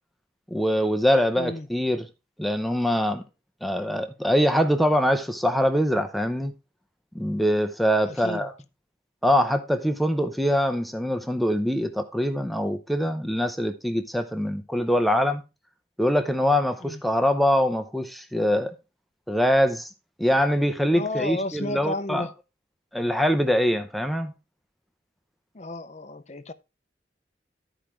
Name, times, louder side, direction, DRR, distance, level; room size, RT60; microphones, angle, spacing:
voice 1, 0.5-2.1 2.4-3.2 3.6-6.5 7.1-8.5 9.2-15.4 16.0-18.7 19.3-19.9 20.2-22.3 22.9-24.3, equal, ahead, 0.7 m, -23 dB
voice 2, 1.4-1.7 8.0-8.5 16.8-17.0 20.9-22.3 25.5-26.5, left 2 dB, 40° left, 0.6 m, -33 dB
12.5 x 5.0 x 4.4 m
head